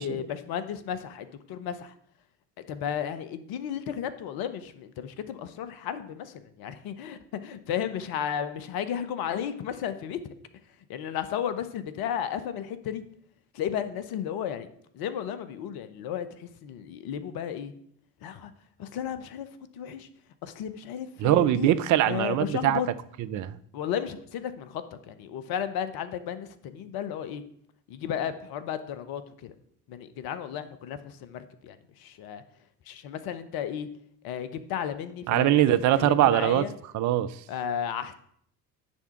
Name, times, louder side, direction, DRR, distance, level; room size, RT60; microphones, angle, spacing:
voice 1, 0.0-1.9 2.7-10.2 10.9-13.0 13.5-14.7 14.9-17.7 18.2-18.5 18.8-19.5 19.7-20.1 20.4-21.7 22.1-22.9 23.7-27.4 27.9-29.5 29.9-32.4 32.9-33.9 34.2-35.6 35.9-36.7 37.5-38.1, left 9 dB, 50° left, 12 dB, 0.9 m, -34 dB
voice 2, 21.2-22.8 23.3-23.6 35.3-36.6 36.9-37.3, right 13 dB, 40° right, 12 dB, 0.5 m, -22 dB
10.0 x 3.5 x 5.8 m, 0.66 s
figure-of-eight pair, 55°, 49 cm